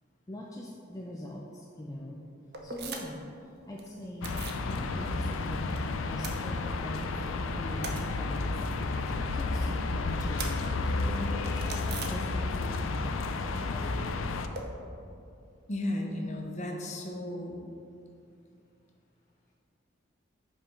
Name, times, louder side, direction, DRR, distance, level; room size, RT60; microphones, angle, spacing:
voice 1, 0.3-2.2 2.6-4.4 4.6-8.5 8.8-11.4 11.8-13.1 13.5-14.1, left 1 dB, 15° left, -2 dB, 0.4 m, -42 dB
sound 1, 2.5-3.3 3.6-4.7 5.0-5.8 6.0-7.1 7.4-12.8 13.0-14.6, right 4 dB, 55° right, 0.7 m, -43 dB
sound 2, 4.2-14.5, left 3 dB, 80° left, 0.4 m, -32 dB
voice 2, 15.7-17.6, left 1 dB, 35° left, 1 dB, 0.8 m, -34 dB
5.2 x 5.1 x 5.6 m, 2.5 s
head